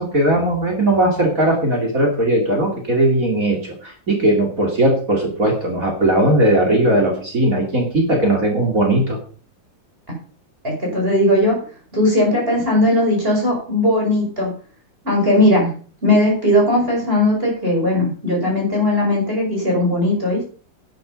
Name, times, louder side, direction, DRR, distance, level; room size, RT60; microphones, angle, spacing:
voice 1, 0.0-9.2, right 1 dB, 45° right, 0 dB, 3.5 m, -18 dB
voice 2, 10.6-11.6 11.9-14.5 15.0-15.7 16.0-20.4, left 1 dB, 30° right, -2 dB, 6.0 m, -18 dB
11.5 x 10.5 x 5.4 m, 0.41 s
omnidirectional pair, 2.1 m